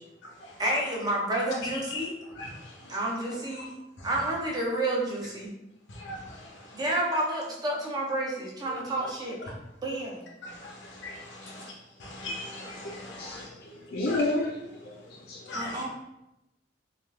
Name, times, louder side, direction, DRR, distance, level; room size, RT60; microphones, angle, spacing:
voice 1, 0.6-2.1 2.9-3.7 4.0-5.5 6.7-9.4 9.8-10.2 15.5-15.9, right 1 dB, 20° right, -2 dB, 0.5 m, -30 dB
voice 2, 12.0-13.4 14.1-14.2 15.5-15.8, left 2 dB, 85° left, -1 dB, 0.7 m, -37 dB
voice 3, 13.2-14.6 14.8-14.9 15.3-15.5, left 2 dB, 55° left, 0 dB, 0.4 m, -31 dB
3.4 x 2.4 x 2.3 m, 0.93 s
head